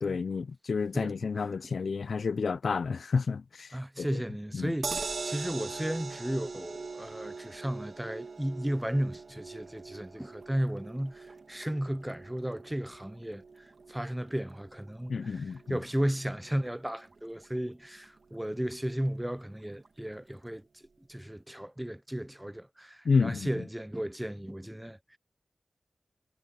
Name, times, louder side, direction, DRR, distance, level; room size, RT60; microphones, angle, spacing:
voice 1, 0.0-4.2 4.5-4.7 15.1-15.8 23.0-23.6, left 5 dB, 85° left, 0.4 m, -30 dB
voice 2, 3.7-15.4 15.7-20.8 21.1-25.2, right 1 dB, 10° right, 0.5 m, -34 dB
sound 1, 4.8-17.1 17.4-17.5 17.8-17.9, right 4 dB, 75° right, 1.6 m, -42 dB
sound 2, 9.6-20.5, right 3 dB, 50° right, 2.5 m, -64 dB
wide cardioid pair, 115°, 0 cm